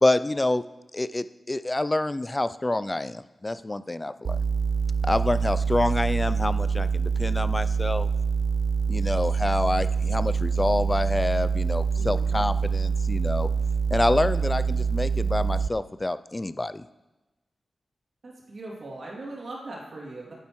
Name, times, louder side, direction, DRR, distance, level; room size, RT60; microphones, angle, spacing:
voice 1, 0.0-0.6 0.9-4.4 5.0-8.1 8.9-13.5 13.9-16.9, left 2 dB, 25° left, 13 dB, 0.3 m, -27 dB
sound 1, 4.2-15.7, right 5 dB, 80° right, 0.3 m, -25 dB
voice 2, 11.9-12.3 18.2-20.3, right 2 dB, 65° right, -4 dB, 2.7 m, -40 dB
9.9 x 7.4 x 3.1 m, 1.1 s
wide cardioid pair, 75°, 0 cm